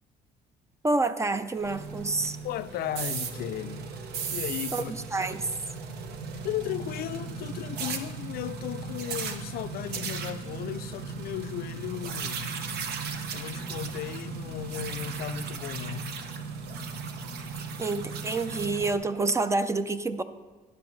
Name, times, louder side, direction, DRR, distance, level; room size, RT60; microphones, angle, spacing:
voice 1, 0.8-2.4 4.7-5.5 17.8-20.2, right 3 dB, 15° right, 0.4 m, -28 dB
sound 1, 1.5-19.0, right 5 dB, 75° right, 0.9 m, -36 dB
voice 2, 2.4-3.9 4.3-4.9 6.4-12.6 13.3-16.2, left 12 dB, 65° left, 0.4 m, -35 dB
12.0 x 9.6 x 3.1 m
cardioid pair, 110°, 17 cm